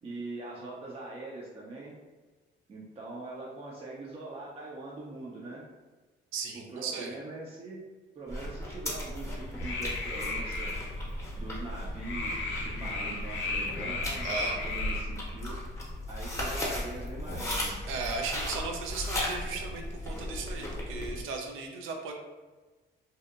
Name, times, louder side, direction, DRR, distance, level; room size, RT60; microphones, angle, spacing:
voice 1, 0.0-2.0 2.7-5.6 6.5-7.8 8.2-10.7 11.4-15.6 16.1-17.8, right 2 dB, 30° right, -4 dB, 0.4 m, -42 dB
voice 2, 6.3-7.1 14.2-14.6 15.5-15.6 17.9-22.1, right 4 dB, 90° right, 3 dB, 0.4 m, -36 dB
sound 1, 8.3-21.2, left 1 dB, 15° left, 0.7 m, -37 dB
sound 2, 9.2-15.0, left 2 dB, 70° left, 0.5 m, -35 dB
2.7 x 2.0 x 2.4 m, 1.3 s
cardioid pair, 90°, 20 cm